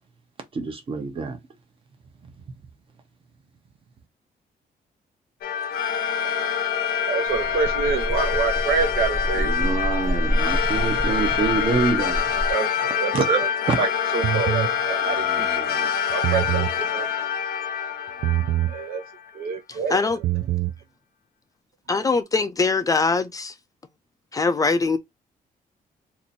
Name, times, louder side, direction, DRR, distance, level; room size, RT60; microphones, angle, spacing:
voice 1, 0.5-1.4 2.2-2.3 9.4-12.5 13.1-13.4 13.7-13.8 15.0-15.9, right 4 dB, 35° right, 0.9 m, -26 dB
sound 1, 5.4-19.2, left 8 dB, 80° left, 0.6 m, -26 dB
voice 2, 6.2-6.8 7.1-9.7 12.5-13.5 13.8-15.6 16.1-17.1 18.7-19.0 19.3-20.2, right 5 dB, 80° right, 1.0 m, -28 dB
sound 2, 7.3-12.5, equal, 5° right, 0.8 m, -28 dB
sound 3, 14.2-14.7 16.1-16.8 18.2-18.8 20.1-20.8, right 13 dB, 60° right, 0.4 m, -24 dB
voice 3, 21.9-23.5 24.3-25.0, left 4 dB, 25° left, 0.4 m, -22 dB
2.9 x 2.6 x 4.0 m
cardioid pair, 160°, 15 cm